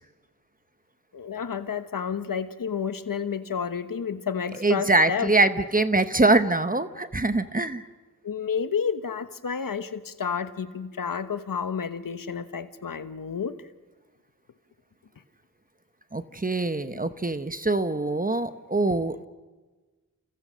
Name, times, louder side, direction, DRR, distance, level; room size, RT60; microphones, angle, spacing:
voice 1, 1.1-5.3 8.2-13.7, left 6 dB, 70° left, 11 dB, 1.2 m, -30 dB
voice 2, 4.6-7.8 16.1-19.2, right 2 dB, 25° right, 10 dB, 1.1 m, -23 dB
29.5 x 29.5 x 6.4 m, 1.3 s
wide cardioid pair, 70°, 34 cm